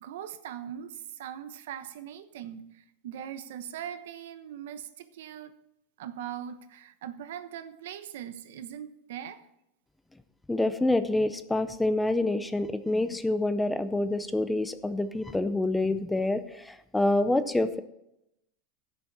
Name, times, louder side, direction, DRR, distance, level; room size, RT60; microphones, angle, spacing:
voice 1, 0.0-5.5 6.0-9.5, right 10 dB, 85° right, 1.0 m, -41 dB
voice 2, 10.5-16.4 16.7-17.8, left 2 dB, 5° left, 0.5 m, -27 dB
16.0 x 7.0 x 4.2 m
supercardioid pair, 175°, 0 cm